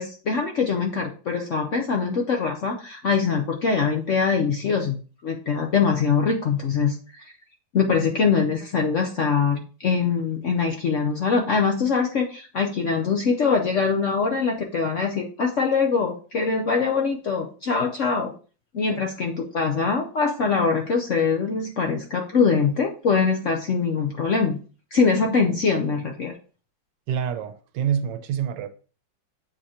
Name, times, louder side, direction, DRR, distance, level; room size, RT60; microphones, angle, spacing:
voice 1, 0.0-5.0 5.2-7.2 7.7-18.3 18.7-24.6 24.9-26.3, left 5 dB, 60° left, 0.8 m, -23 dB
voice 2, 27.1-28.7, right 8 dB, 75° right, 1.2 m, -26 dB
7.8 x 2.9 x 4.8 m
omnidirectional pair, 2.0 m